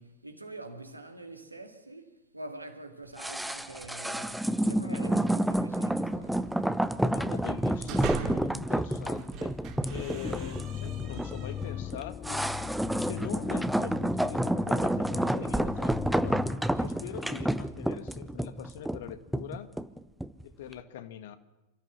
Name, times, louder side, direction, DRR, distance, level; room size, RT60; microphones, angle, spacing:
voice 1, 0.0-6.7, right 2 dB, 85° right, 2.5 m, -45 dB
sound 1, 3.2-20.4 20.7-20.8, right 1 dB, ahead, 0.9 m, -29 dB
voice 2, 4.8-5.3 7.0-9.6 9.9-12.4 13.0-16.4 16.8-19.7 20.4-21.4, left 10 dB, 55° left, 1.6 m, -43 dB
sound 2, 7.5-8.6 9.1-11.9, right 7 dB, 35° right, 2.8 m, -40 dB
sound 3, 9.5-17.3, left 9 dB, 25° left, 0.7 m, -40 dB
28.0 x 14.0 x 7.4 m
figure-of-eight pair, 90°, 0 cm